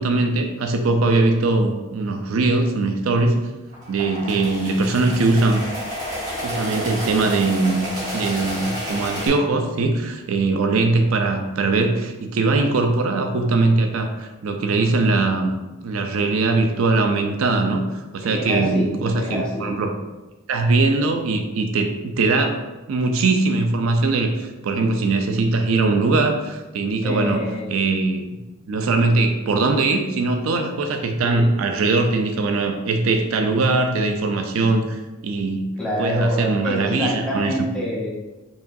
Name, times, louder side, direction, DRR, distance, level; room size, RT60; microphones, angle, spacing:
voice 1, 0.0-3.5 3.9-5.6 6.4-19.9 20.5-22.6 22.9-27.4 27.7-28.4 28.7-35.7 36.0-37.5, right 3 dB, 75° right, 5 dB, 0.4 m, -21 dB
sound 1, 3.7-9.3, equal, 40° right, 1.3 m, -30 dB
voice 2, 18.2-19.7 27.0-27.7 31.2-31.5 35.8-38.1, equal, 5° left, -6 dB, 0.9 m, -27 dB
4.8 x 3.0 x 2.6 m, 1.1 s
head